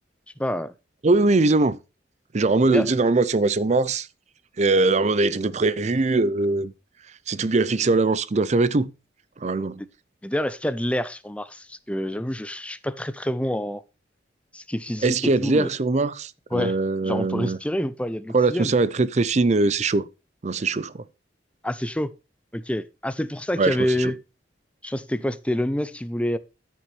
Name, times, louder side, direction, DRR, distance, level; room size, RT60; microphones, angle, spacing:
voice 1, 0.4-0.7 2.7-2.9 10.2-13.8 14.5-15.7 16.5-16.8 17.0-18.7 21.6-22.1 22.5-24.2 24.8-26.4, left 1 dB, 5° left, 0.5 m, -27 dB
voice 2, 1.0-1.8 2.3-4.1 4.6-6.7 7.3-8.9 9.4-9.8 15.0-17.6 18.3-20.1 20.4-21.0 23.6-24.1, right 3 dB, 40° right, 0.5 m, -21 dB
13.5 x 6.1 x 3.2 m
head